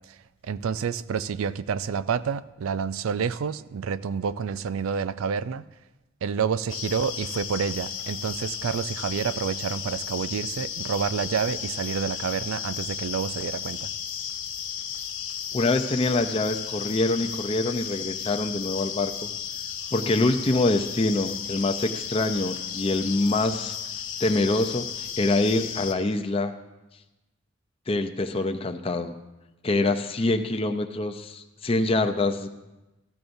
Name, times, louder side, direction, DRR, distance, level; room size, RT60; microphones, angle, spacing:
voice 1, 0.4-5.6 6.2-13.9, right 6 dB, 85° right, 16 dB, 0.4 m, -28 dB
sound 1, 6.7-25.9, left 8 dB, 70° left, 1.4 m, -34 dB
voice 2, 15.5-19.3 19.9-23.7 24.2-26.5 27.9-29.1 29.6-32.5, left 2 dB, 25° left, 6 dB, 0.5 m, -25 dB
14.0 x 13.5 x 2.6 m, 1.0 s
head